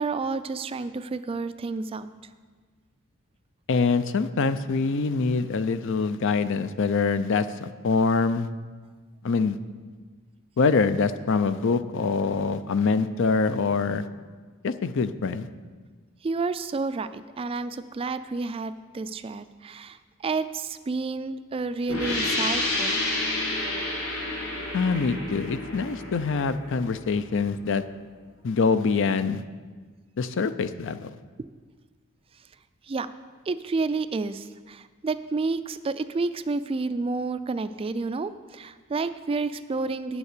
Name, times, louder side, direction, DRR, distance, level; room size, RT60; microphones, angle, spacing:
voice 1, 0.0-2.1 16.2-22.9 32.9-33.1 33.5-40.2, right 3 dB, 25° right, 12 dB, 0.3 m, -30 dB
voice 2, 3.7-8.5 9.2-9.6 10.6-14.1 14.6-15.5 24.7-27.8 28.4-29.4 30.2-31.1, left 4 dB, 60° left, 12 dB, 0.5 m, -24 dB
sound 1, 21.9-27.4, left 2 dB, 80° left, 3.7 m, -30 dB
9.2 x 7.1 x 6.7 m, 1.4 s
head